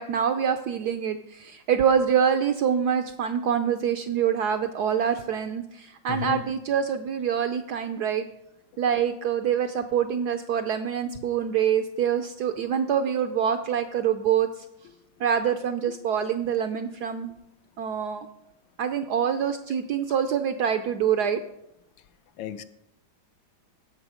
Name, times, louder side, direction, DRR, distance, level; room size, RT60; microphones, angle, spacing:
voice 1, 0.0-8.3 8.8-14.6 15.2-17.3 17.8-18.3 18.8-21.4, right 8 dB, 75° right, 0.9 m, -25 dB
voice 2, 6.1-6.4 22.4-22.6, left 11 dB, 75° left, 1.2 m, -32 dB
16.5 x 5.9 x 4.9 m
omnidirectional pair, 2.2 m